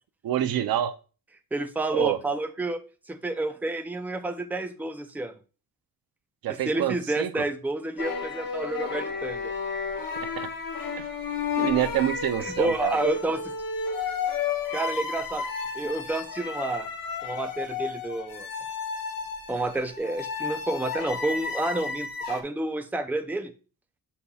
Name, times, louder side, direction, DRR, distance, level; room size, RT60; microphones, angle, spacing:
voice 1, 0.2-0.9 1.9-2.2 6.4-7.3 10.2-10.5 11.6-13.0, right 11 dB, 90° right, 0.6 m, -27 dB
voice 2, 1.5-2.8 3.1-5.3 6.5-9.5 12.4-13.5 14.7-15.5 15.7-16.9 17.2-18.5 19.5-23.5, right 2 dB, 5° right, 0.5 m, -29 dB
sound 1, 8.0-22.4, left 5 dB, 75° left, 1.3 m, -32 dB
8.2 x 5.5 x 2.3 m
wide cardioid pair, 130°, 35 cm